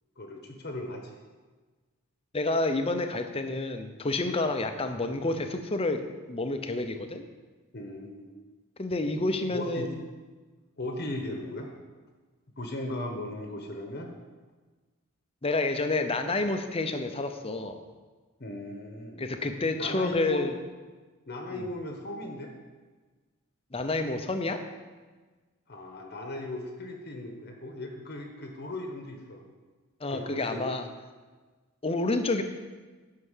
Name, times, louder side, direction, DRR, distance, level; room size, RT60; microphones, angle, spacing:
voice 1, 0.2-1.1 7.7-8.3 9.5-9.9 10.8-11.7 12.6-14.1 18.4-19.2 19.8-20.4 21.3-22.5 25.7-29.4 30.1-30.7, left 1 dB, 45° left, 2 dB, 1.1 m, -37 dB
voice 2, 2.3-6.0 6.3-7.2 8.8-10.0 15.4-17.8 19.2-20.6 21.5-21.7 23.7-24.6 30.0-30.9 31.8-32.4, left 2 dB, 25° left, 7 dB, 0.7 m, -29 dB
10.0 x 5.8 x 7.3 m, 1.4 s
head